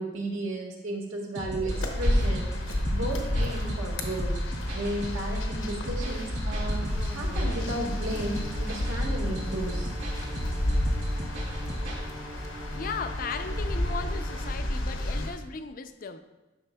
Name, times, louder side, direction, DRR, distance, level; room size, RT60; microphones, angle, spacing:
voice 1, 0.0-4.3 4.7-6.8 7.1-9.9, right 1 dB, 85° right, -1 dB, 1.6 m, -34 dB
sound 1, 1.3-12.0, equal, 60° right, 2.3 m, -37 dB
sound 2, 1.7-15.3, left 1 dB, 75° left, 0.9 m, -30 dB
sound 3, 6.8-14.5, right 1 dB, 25° right, 0.7 m, -44 dB
voice 2, 12.7-16.2, left 5 dB, 45° left, 9 dB, 0.4 m, -36 dB
11.0 x 5.9 x 2.2 m, 1.1 s
head